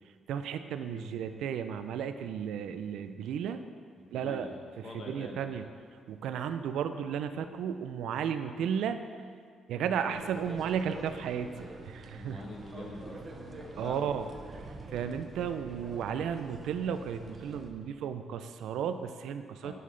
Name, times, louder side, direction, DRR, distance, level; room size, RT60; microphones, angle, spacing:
voice 1, 0.3-3.6 4.1-4.5 4.8-5.7 6.1-9.0 9.7-12.4 13.8-14.3 14.6-19.8, right 8 dB, 80° right, 9 dB, 0.4 m, -34 dB
voice 2, 4.0-5.6 10.0-10.3 12.1-14.2 19.6-19.8, left 2 dB, 35° left, -1 dB, 1.1 m, -45 dB
sound 1, 10.1-17.7, right 2 dB, 25° right, 0.6 m, -46 dB
11.0 x 5.5 x 3.3 m, 2.1 s
cardioid pair, 165°, 0 cm